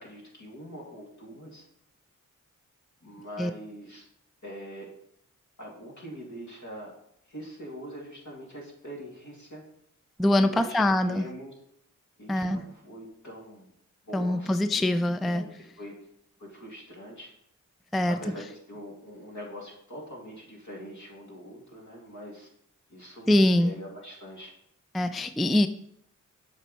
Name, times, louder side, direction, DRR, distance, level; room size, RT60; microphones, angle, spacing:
voice 1, 0.0-1.7 3.0-4.0 4.4-4.9 5.6-6.9 7.2-9.6 10.4-11.5 12.2-13.7 14.0-14.9 15.2-16.0 16.4-17.3 18.0-22.5 22.9-24.5, equal, 65° left, -2 dB, 2.3 m, -43 dB
voice 2, 10.2-11.2 12.3-12.6 14.1-15.5 17.9-18.2 23.3-23.7 24.9-25.7, left 1 dB, ahead, 11 dB, 0.3 m, -23 dB
7.2 x 4.5 x 4.1 m, 0.72 s
cardioid pair, 55°, 32 cm